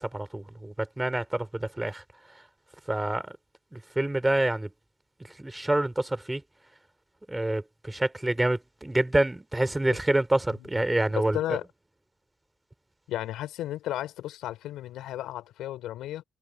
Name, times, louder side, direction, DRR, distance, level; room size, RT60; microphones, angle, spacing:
voice 1, 0.0-2.0 2.9-3.3 3.7-4.7 5.4-6.4 7.3-11.4, right 1 dB, 10° right, 3.0 m, -27 dB
voice 2, 10.5-10.8 11.1-11.7 13.1-16.2, left 13 dB, 85° left, 3.9 m, -34 dB
cardioid pair, 90°, 0 cm